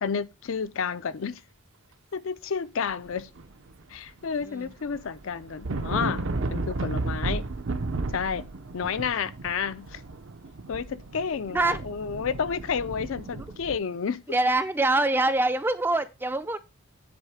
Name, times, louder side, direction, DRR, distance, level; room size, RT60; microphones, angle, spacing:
voice 1, 0.0-1.4 2.1-3.3 3.9-7.4 8.1-8.4 8.7-10.0 10.7-14.2, left 6 dB, 65° left, 0.4 m, -31 dB
sound 1, 3.0-4.0 4.2-13.8, right 2 dB, 60° right, 0.6 m, -33 dB
voice 2, 14.3-16.6, right 2 dB, 10° right, 0.4 m, -24 dB
9.5 x 3.7 x 4.8 m
head